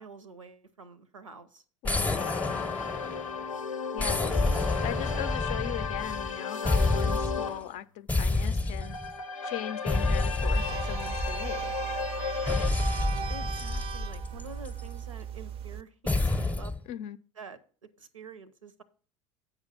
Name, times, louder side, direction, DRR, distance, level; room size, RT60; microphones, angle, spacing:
voice 1, 0.0-1.6 13.3-16.7 17.4-17.6 18.0-18.8, right 4 dB, 85° right, 0.7 m, -47 dB
voice 2, 1.8-2.9 3.9-4.2 4.8-9.0 9.4-11.7 16.9-17.2, left 12 dB, 45° left, 0.5 m, -39 dB
sound 1, 1.8-3.4 4.0-6.3 6.7-7.5 8.1-9.1 9.9-11.7 12.5-14.9 16.1-16.8, left 2 dB, 10° left, 0.7 m, -29 dB
sound 2, 2.1-7.7 8.6-12.7, left 6 dB, 85° left, 0.6 m, -35 dB
sound 3, 10.4-15.8, right 8 dB, 35° right, 0.4 m, -37 dB
8.0 x 5.1 x 5.7 m
figure-of-eight pair, 75°, 16 cm